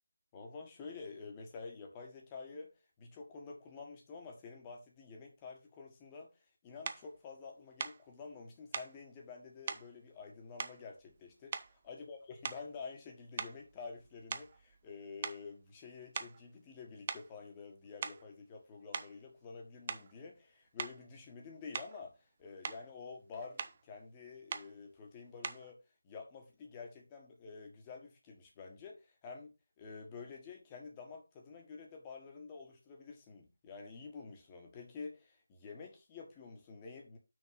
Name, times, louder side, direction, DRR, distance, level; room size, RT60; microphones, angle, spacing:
voice 1, 0.3-2.7 3.0-25.8 26.0-37.2, left 4 dB, 15° left, 1.5 m, -49 dB
sound 1, 6.8-7.1 7.8-8.0 8.7-9.0 9.7-9.9 10.6-11.2 11.5-11.9 12.4-12.8 13.4-14.9 15.2-15.4 16.1-16.4 17.1-17.3 17.8-18.3 18.9-19.1 19.9-20.1 20.8-21.0 21.7-22.0 22.4-22.9 23.6-23.8 24.5-24.7 25.4-25.7, right 5 dB, 25° right, 0.5 m, -42 dB
6.3 x 5.2 x 5.9 m
figure-of-eight pair, 160°, 0 cm